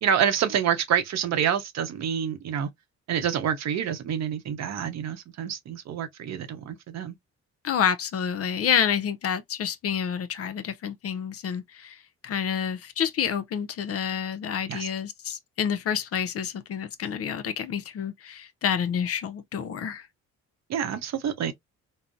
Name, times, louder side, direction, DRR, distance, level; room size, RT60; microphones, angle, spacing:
voice 1, 0.0-2.7 3.1-7.1 14.7-14.9 20.7-21.5, right 8 dB, 60° right, 0.7 m, -27 dB
voice 2, 7.6-12.0 12.2-20.1, left 8 dB, 50° left, 0.5 m, -28 dB
3.7 x 2.0 x 2.5 m
cardioid pair, 90°, 30 cm